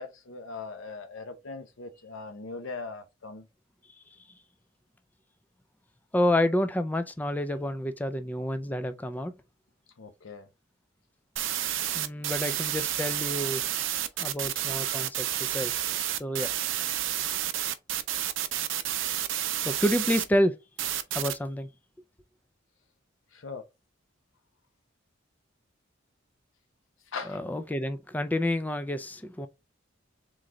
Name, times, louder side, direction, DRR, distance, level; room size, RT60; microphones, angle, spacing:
voice 1, 0.0-3.5 10.0-10.5 23.3-23.6 27.1-27.4, left 4 dB, 85° left, 0.7 m, -40 dB
voice 2, 6.1-9.3 11.9-13.6 14.2-15.7 16.2-16.5 19.6-20.5 21.1-21.7 27.3-29.5, left 1 dB, 10° left, 0.3 m, -29 dB
sound 1, 11.4-20.2 20.8-21.4, right 12 dB, 75° right, 0.5 m, -30 dB
3.8 x 3.1 x 3.6 m
head